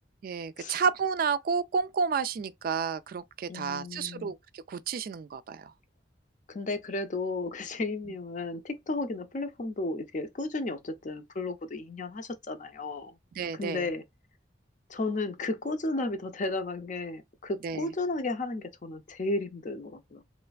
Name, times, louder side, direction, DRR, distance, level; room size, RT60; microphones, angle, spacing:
voice 1, 0.2-5.7 13.4-13.9 17.6-17.9, right 6 dB, 50° right, 0.3 m, -31 dB
voice 2, 3.5-4.3 6.5-13.2 13.5-14.0 14.9-20.2, left 2 dB, 45° left, 0.6 m, -33 dB
3.2 x 3.1 x 2.3 m
head